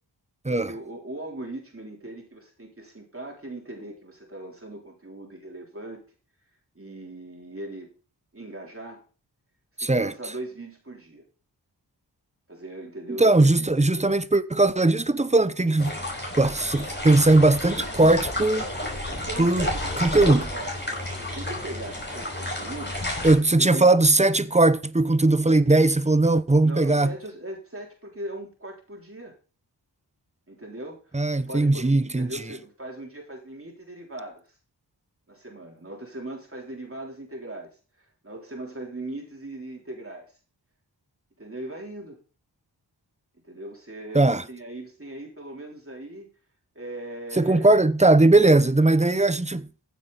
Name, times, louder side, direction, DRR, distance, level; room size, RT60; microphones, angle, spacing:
voice 1, 0.5-6.0 6.8-7.9 8.3-9.0 9.8-11.2 12.5-13.7 19.1-19.8 20.1-23.9 26.6-29.3 30.5-34.5 35.3-37.7 38.0-40.4 41.4-42.2 43.4-46.3 46.8-47.8, right 1 dB, 30° right, 3.5 m, -39 dB
voice 2, 9.8-10.1 13.2-15.9 16.4-18.7 19.4-19.7 20.0-20.4 23.2-27.1 31.1-32.4 44.1-44.4 47.4-49.7, right 2 dB, 15° right, 0.7 m, -19 dB
sound 1, 15.8-23.3, left 1 dB, 25° left, 5.6 m, -31 dB
15.0 x 8.2 x 4.0 m
wide cardioid pair, 75°, 42 cm